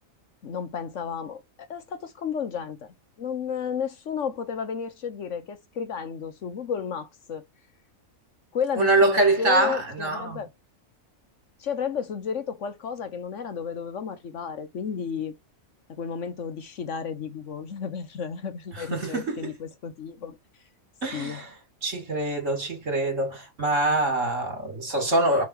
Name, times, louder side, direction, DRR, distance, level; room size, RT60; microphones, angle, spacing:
voice 1, 0.4-7.4 8.5-10.5 11.6-15.3 15.9-20.4 21.1-21.4, left 7 dB, 65° left, 1.2 m, -32 dB
voice 2, 8.8-10.4 18.7-19.5 21.0-21.5 21.8-25.4, right 2 dB, 60° right, 3.4 m, -24 dB
5.4 x 4.8 x 4.7 m
omnidirectional pair, 1.5 m